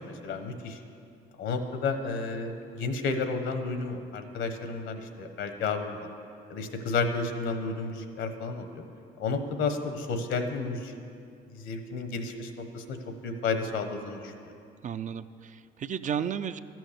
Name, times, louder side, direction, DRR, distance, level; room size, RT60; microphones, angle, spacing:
voice 1, 0.2-0.8 1.4-6.1 6.5-8.8 9.2-10.9 11.5-14.3, left 4 dB, 70° left, 7 dB, 1.1 m, -32 dB
voice 2, 14.8-16.6, right 8 dB, 40° right, 12 dB, 0.4 m, -33 dB
13.0 x 6.1 x 6.7 m, 2.5 s
supercardioid pair, 65°, 20 cm